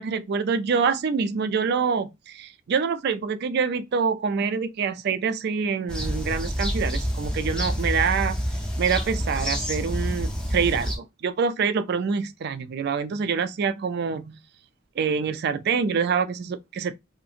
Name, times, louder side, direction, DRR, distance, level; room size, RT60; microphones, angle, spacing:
voice 1, 0.0-8.4 8.8-14.4 15.0-17.0, right 6 dB, 55° right, 0.4 m, -26 dB
sound 1, 5.9-11.0, equal, 5° left, 0.5 m, -28 dB
2.7 x 2.5 x 2.4 m
head